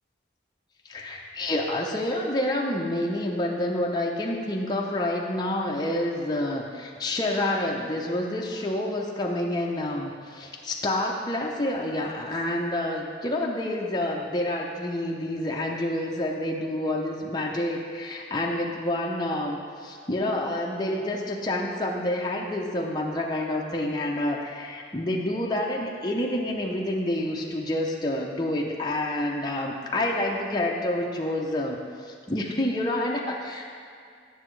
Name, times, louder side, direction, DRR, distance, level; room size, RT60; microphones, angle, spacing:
voice 1, 0.9-31.8 32.1-33.7, left 1 dB, 20° left, -1 dB, 0.6 m, -28 dB
10.0 x 6.6 x 3.2 m, 2.3 s
head